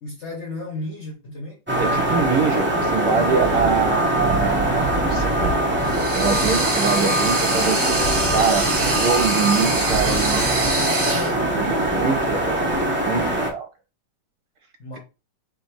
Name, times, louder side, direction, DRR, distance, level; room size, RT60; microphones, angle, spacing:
voice 1, 0.0-1.6 14.8-15.0, left 2 dB, 50° left, 1.0 m, -33 dB
sound 1, 1.7-13.5, right 1 dB, 15° right, 0.4 m, -22 dB
voice 2, 1.8-5.7 6.1-10.7 11.6-12.7 13.0-13.7, right 6 dB, 60° right, 1.2 m, -24 dB
sound 2, 5.8-11.3, right 2 dB, 30° right, 1.4 m, -25 dB
4.2 x 2.7 x 4.3 m
omnidirectional pair, 2.1 m